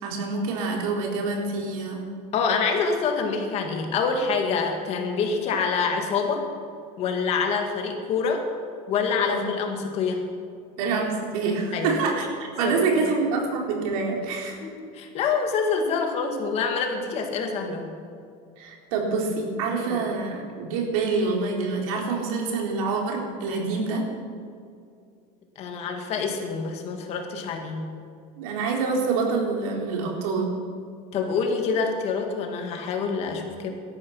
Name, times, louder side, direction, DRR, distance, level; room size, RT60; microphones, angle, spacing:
voice 1, 0.0-2.1 9.3-9.4 10.8-12.3 12.6-14.6 18.6-20.4 20.7-24.0 28.4-30.5, right 4 dB, 85° right, 0 dB, 3.9 m, -26 dB
voice 2, 2.3-6.5 7.0-8.4 8.9-10.2 11.7-12.0 12.6-13.1 14.6-17.9 19.9-20.0 25.6-27.9 31.1-33.7, left 5 dB, 35° left, 3 dB, 2.2 m, -26 dB
18.0 x 13.5 x 5.8 m, 2.4 s
cardioid pair, 175°, 18 cm